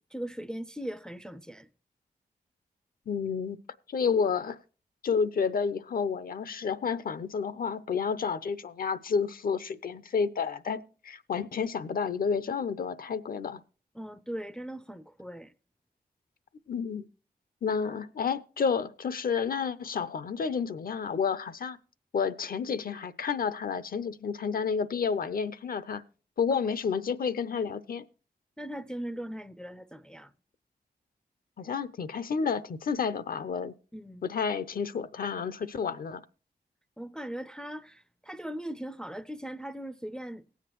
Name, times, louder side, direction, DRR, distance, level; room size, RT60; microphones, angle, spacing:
voice 1, 0.1-1.7 13.9-15.5 28.6-30.3 33.9-34.3 37.0-40.4, right 1 dB, 5° left, 0.4 m, -39 dB
voice 2, 3.1-3.6 3.9-4.6 5.0-13.6 16.7-17.0 17.6-21.8 22.1-26.0 26.4-28.0 31.6-33.7 34.2-36.2, left 6 dB, 65° left, 0.6 m, -30 dB
18.5 x 8.0 x 3.0 m
cardioid pair, 65°, 16 cm